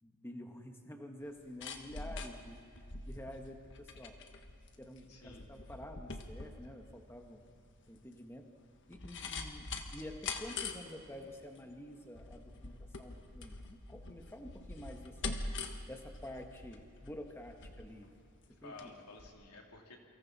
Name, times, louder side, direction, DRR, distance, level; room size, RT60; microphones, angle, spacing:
voice 1, 0.0-4.2 4.8-7.4 7.9-8.6 8.9-15.4 15.9-18.1 18.5-18.9, left 1 dB, 10° left, 4 dB, 1.3 m, -49 dB
sound 1, 1.2-18.9 19.2-19.3, left 3 dB, 55° left, 1.5 m, -45 dB
voice 2, 5.1-5.5 9.4-9.5 18.6-20.0, left 3 dB, 85° left, 0 dB, 3.1 m, -52 dB
29.0 x 24.5 x 4.2 m, 2.5 s
head